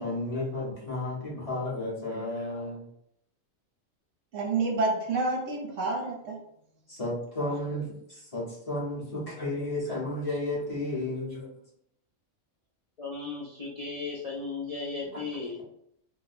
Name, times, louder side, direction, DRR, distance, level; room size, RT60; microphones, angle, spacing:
voice 1, 0.0-2.9 6.9-11.6 15.1-15.2, left 1 dB, 30° left, -6 dB, 0.9 m, -33 dB
voice 2, 4.3-6.4, right 3 dB, 70° right, 0 dB, 1.0 m, -28 dB
voice 3, 13.0-15.6, left 4 dB, 70° left, -3 dB, 0.3 m, -36 dB
2.7 x 2.1 x 4.0 m, 0.72 s
omnidirectional pair, 1.4 m